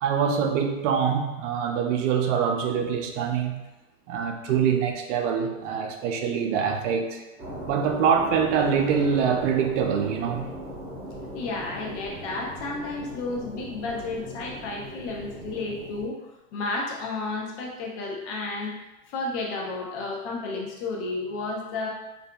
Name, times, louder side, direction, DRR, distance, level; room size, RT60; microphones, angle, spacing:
voice 1, 0.0-3.7 4.1-7.2 7.7-10.5 13.5-13.6, right 7 dB, 60° right, 4 dB, 0.5 m, -24 dB
sound 1, 7.4-16.1, equal, 15° right, 0.8 m, -38 dB
voice 2, 11.3-16.2 16.5-18.7 19.1-21.9, left 3 dB, 55° left, -1 dB, 0.8 m, -32 dB
2.5 x 2.5 x 2.2 m, 1.0 s
hypercardioid pair, 115°, 41 cm